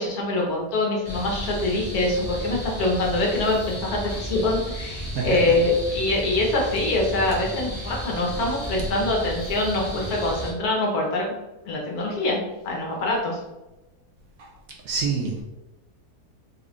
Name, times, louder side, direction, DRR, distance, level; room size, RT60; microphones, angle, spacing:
voice 1, 0.0-11.2 11.6-13.4, left 2 dB, 65° left, -1 dB, 1.4 m, -24 dB
sound 1, 1.0-10.5, equal, 15° right, 1.2 m, -33 dB
voice 2, 5.1-5.6 14.4-14.5 14.8-15.4, right 4 dB, 70° right, -1 dB, 0.9 m, -27 dB
4.0 x 2.5 x 3.4 m, 1.0 s
omnidirectional pair, 1.8 m